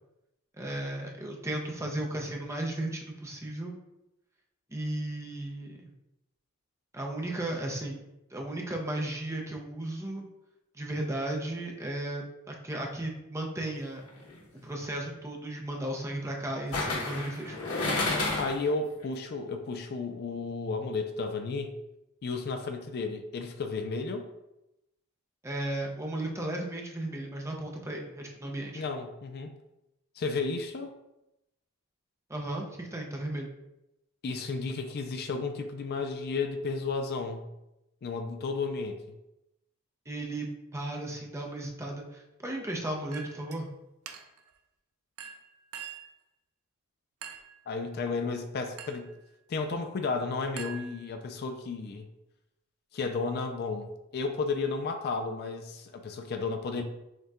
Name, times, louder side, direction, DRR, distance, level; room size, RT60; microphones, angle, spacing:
voice 1, 0.6-3.8 4.7-5.9 6.9-8.0 8.3-10.3 10.7-14.0 14.6-17.5 25.4-28.8 32.3-33.5 40.1-43.7, right 1 dB, 15° right, 0 dB, 0.6 m, -35 dB
sound 1, 14.1-14.4 16.7-18.7 19.0-19.1, left 2 dB, 90° left, 1.1 m, -30 dB
voice 2, 18.4-21.8 22.2-24.3 28.8-29.5 30.2-30.9 34.2-37.5 38.0-39.0 47.7-49.1 49.5-52.1 52.9-56.8, left 4 dB, 50° left, 6 dB, 0.4 m, -33 dB
Chink clink, 43.1-43.6 44.1-44.5 45.2-46.2 47.2-47.6 48.8-49.1 50.6-51.4, right 7 dB, 70° right, 0.5 m, -44 dB
6.4 x 2.2 x 3.5 m, 0.91 s
head